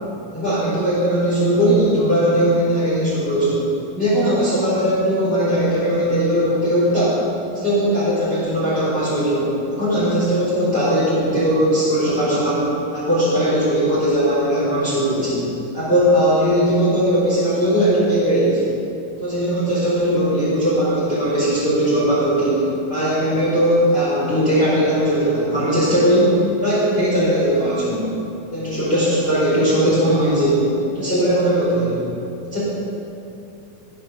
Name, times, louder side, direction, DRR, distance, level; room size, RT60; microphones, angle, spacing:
voice 1, 0.3-3.7 4.0-7.2 7.5-15.4 15.7-18.6 19.2-28.1 28.5-32.1 32.5-32.6, equal, 15° left, -10 dB, 3.6 m, -19 dB
16.5 x 6.8 x 7.1 m, 2.9 s
omnidirectional pair, 4.3 m